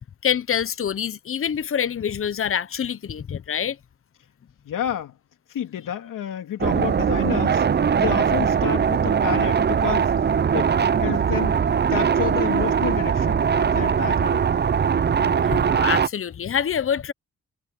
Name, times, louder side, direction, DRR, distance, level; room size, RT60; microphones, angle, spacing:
voice 1, 0.2-3.8 15.2-17.1, left 8 dB, 45° left, 1.0 m, -26 dB
voice 2, 4.7-5.2 5.5-7.7 8.0-10.1 10.5-10.7 11.0-11.6 11.9-14.5, left 10 dB, 80° left, 2.8 m, -30 dB
sound 1, 6.6-16.1, right 7 dB, 30° right, 0.7 m, -21 dB
cardioid pair, 90°, 32 cm